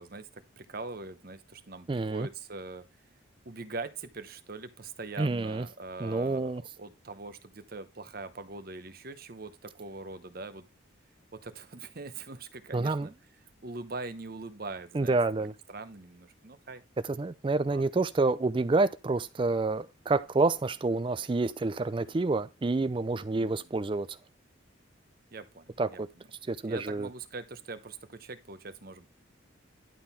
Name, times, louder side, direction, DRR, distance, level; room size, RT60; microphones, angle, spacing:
voice 1, 0.0-2.8 3.4-10.7 11.3-13.1 13.6-16.8 17.6-17.8 23.3-23.7 25.3-26.0 26.6-29.1, right 3 dB, 45° right, 0.9 m, -42 dB
voice 2, 1.9-2.3 5.2-5.7 6.0-6.6 12.7-13.1 14.9-15.5 17.1-24.2 25.8-26.1 26.5-27.1, right 3 dB, 25° right, 0.4 m, -28 dB
11.5 x 3.8 x 5.7 m
head